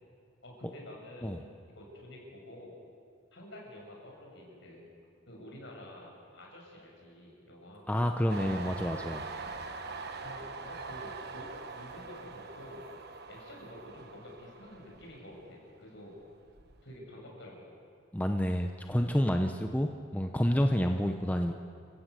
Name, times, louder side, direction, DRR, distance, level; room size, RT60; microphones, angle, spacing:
voice 1, 0.4-1.3 1.7-2.8 3.3-4.9 5.3-7.9 10.2-12.9 13.3-16.1 16.8-17.7, left 1 dB, 65° left, -1 dB, 6.9 m, -49 dB
voice 2, 7.9-9.3 18.1-21.5, equal, 10° left, 4 dB, 0.8 m, -29 dB
Train, 8.3-15.7 16.1-16.9, right 4 dB, 55° right, 1.3 m, -43 dB
29.0 x 15.5 x 8.3 m, 2.3 s
head